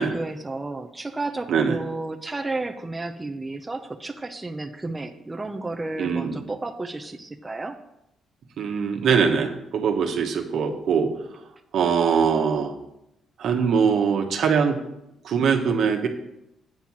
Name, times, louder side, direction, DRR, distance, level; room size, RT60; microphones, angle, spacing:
voice 1, 0.0-7.8, right 2 dB, 15° right, 4 dB, 0.7 m, -32 dB
voice 2, 1.5-1.8 6.0-6.4 8.6-12.7 13.4-14.8 15.2-16.1, right 6 dB, 70° right, 3 dB, 1.2 m, -22 dB
8.9 x 4.5 x 7.2 m, 0.85 s
cardioid pair, 90°, 0 cm